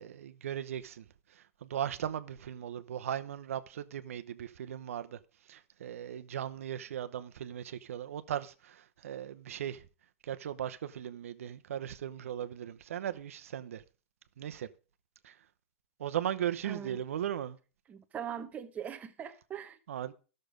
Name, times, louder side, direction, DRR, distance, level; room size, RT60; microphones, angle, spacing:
voice 1, 0.0-9.9 10.2-13.8 14.4-14.7 15.2-15.4 16.0-17.6 19.9-20.1, right 10 dB, 85° right, 0.8 m, -38 dB
voice 2, 16.6-17.0 17.9-19.8, right 9 dB, 20° right, 0.9 m, -41 dB
12.5 x 6.7 x 5.1 m
hypercardioid pair, 140°, 7 cm